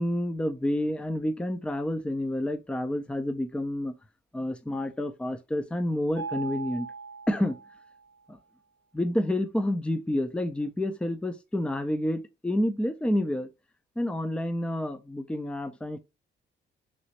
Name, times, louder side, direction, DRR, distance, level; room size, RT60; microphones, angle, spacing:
voice 1, 0.0-3.9 4.3-6.9 7.3-7.6 8.3-8.4 8.9-13.5 14.0-16.0, left 1 dB, 5° left, 0.5 m, -29 dB
Mallet percussion, 6.2-8.1, right 4 dB, 65° right, 0.8 m, -39 dB
3.2 x 3.0 x 2.8 m
cardioid pair, 90°, 20 cm